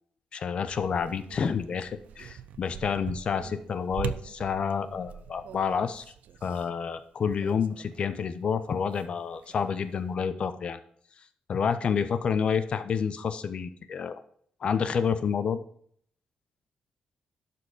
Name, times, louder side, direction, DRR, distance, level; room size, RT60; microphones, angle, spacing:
voice 1, 0.3-6.0 6.4-10.8 11.5-14.2 14.6-15.6, left 6 dB, 45° left, 11 dB, 0.6 m, -29 dB
sound 1, 0.7-8.3 8.6-10.1, right 9 dB, 85° right, 0.4 m, -43 dB
12.0 x 4.3 x 5.0 m, 0.62 s
wide cardioid pair, 145°, 2 cm